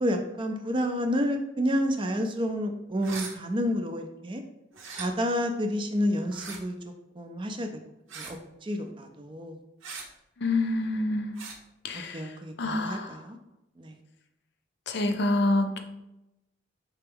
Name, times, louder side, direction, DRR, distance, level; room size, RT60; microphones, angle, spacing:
voice 1, 0.0-4.4 5.0-6.8 7.2-7.7 8.1-9.6 11.9-13.4 13.8-14.0, equal, 25° right, 5 dB, 0.4 m, -29 dB
sound 1, 3.0-3.3 4.7-5.1 6.3-6.6 8.1-8.4 9.8-10.1 11.3-11.6, right 4 dB, 75° right, 0.8 m, -39 dB
voice 2, 10.4-11.4 11.8-13.2 14.9-15.8, left 2 dB, 55° left, 5 dB, 0.5 m, -27 dB
4.4 x 3.4 x 3.5 m, 0.90 s
head